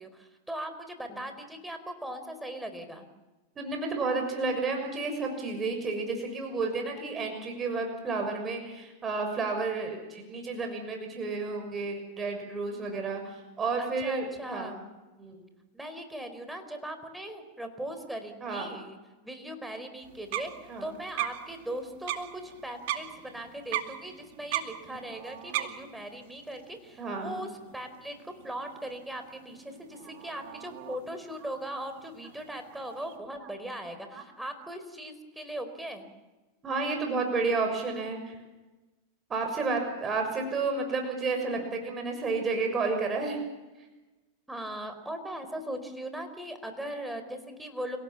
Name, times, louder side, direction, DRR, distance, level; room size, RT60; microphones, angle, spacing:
voice 1, 0.0-3.1 13.8-14.8 15.7-19.0 19.2-36.1 44.5-48.0, right 1 dB, 5° right, 7 dB, 4.5 m, -39 dB
voice 2, 3.6-14.8 15.2-15.4 18.4-18.7 20.7-20.9 24.9-25.0 27.0-27.4 34.1-34.2 36.6-38.3 39.3-43.4, right 3 dB, 25° right, 3 dB, 6.4 m, -31 dB
sound 1, 20.0-33.2, right 13 dB, 65° right, 2.4 m, -40 dB
30.0 x 17.5 x 7.2 m, 1.1 s
hypercardioid pair, 115°, 0 cm